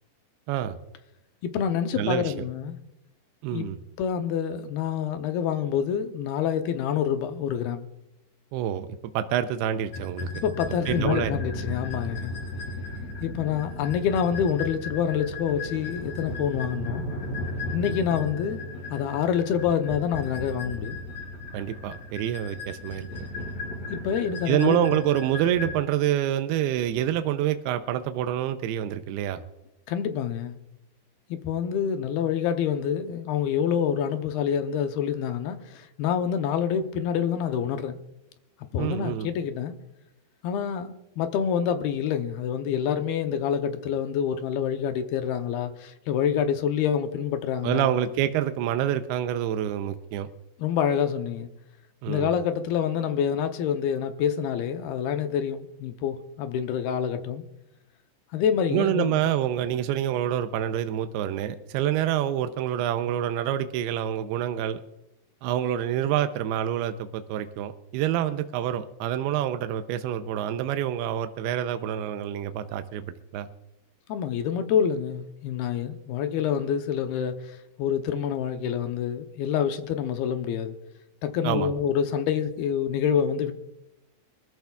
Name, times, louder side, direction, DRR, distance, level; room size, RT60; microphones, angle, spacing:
voice 1, 1.4-2.8 3.5-3.7 4.0-7.9 10.3-12.3 13.2-17.0 17.7-18.6 18.9-21.0 23.9-25.1 29.9-30.6 31.3-38.0 38.7-39.7 40.4-48.0 50.6-51.5 52.1-57.4 58.3-59.2 74.1-80.8 81.2-83.5, left 8 dB, 75° left, 2.7 m, -27 dB
voice 2, 1.9-2.3 3.4-3.8 8.5-8.9 9.1-10.4 10.9-11.3 21.5-23.1 24.5-29.4 38.8-39.3 47.6-50.3 52.0-52.4 58.7-64.8 65.4-73.5 81.4-81.7, right 11 dB, 85° right, 2.6 m, -27 dB
sound 1, 9.9-25.8, left 2 dB, 45° left, 4.5 m, -35 dB
24.5 x 14.0 x 2.3 m
omnidirectional pair, 4.6 m